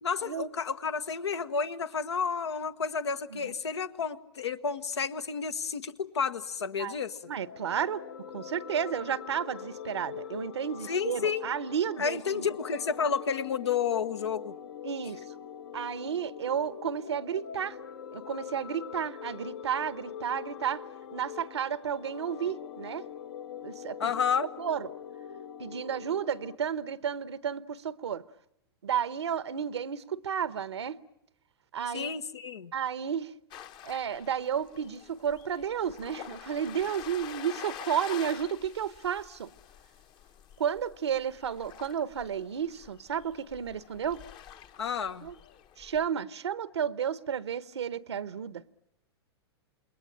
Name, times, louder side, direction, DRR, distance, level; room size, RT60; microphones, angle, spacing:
voice 1, 0.0-7.2 10.8-11.5 12.0-14.5 24.0-24.5 31.8-32.7 44.8-45.3, left 6 dB, 90° left, 1.3 m, -31 dB
sound 1, 7.2-26.6, left 8 dB, 65° left, 1.2 m, -43 dB
voice 2, 7.3-8.0 8.3-12.5 14.8-15.2 15.7-17.8 18.1-20.8 21.1-23.1 23.6-24.2 24.6-24.9 25.6-28.2 28.8-31.0 31.7-32.1 32.7-33.3 33.8-39.5 40.6-44.2 45.2-45.3 45.8-48.6, right 8 dB, 85° right, 1.0 m, -32 dB
sound 2, 33.5-46.1, left 10 dB, 35° left, 1.0 m, -47 dB
28.0 x 21.5 x 8.9 m
hypercardioid pair, 125°, 14 cm